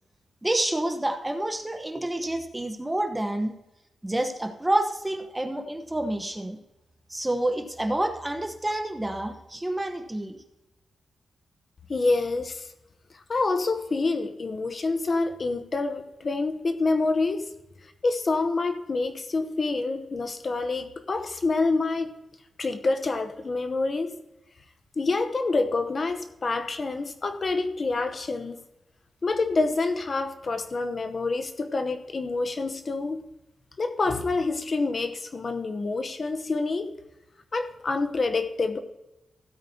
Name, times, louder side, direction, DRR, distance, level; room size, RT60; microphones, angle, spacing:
voice 1, 0.4-3.5 4.0-6.6 7.1-10.4, right 1 dB, 10° right, 6 dB, 1.0 m, -28 dB
voice 2, 11.9-12.7 13.1-17.5 18.0-22.1 22.6-24.2 25.0-28.6 29.2-33.2 33.8-36.9 37.5-38.8, left 3 dB, 40° left, 8 dB, 0.8 m, -27 dB
16.0 x 8.8 x 2.8 m, 0.95 s
wide cardioid pair, 105°, 0 cm